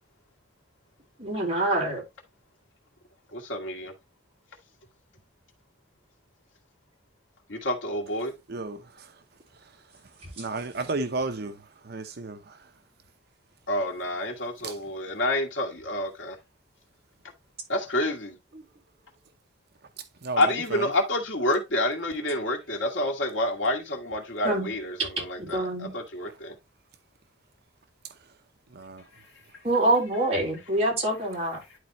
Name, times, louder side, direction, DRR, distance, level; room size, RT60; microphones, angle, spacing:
voice 1, 1.2-2.0 18.5-18.6 24.4-24.7 25.0-25.1 25.4-25.9 29.6-31.6, right 1 dB, 35° right, 3.7 m, -25 dB
voice 2, 3.3-3.9 7.5-8.3 13.7-16.4 17.7-18.4 20.4-26.5, left 1 dB, 85° left, 2.1 m, -28 dB
voice 3, 10.4-11.5 11.9-12.4 14.6-14.7 20.2-20.4 20.7-20.9 28.7-29.0, right 3 dB, 55° right, 0.8 m, -32 dB
11.0 x 4.3 x 3.0 m
head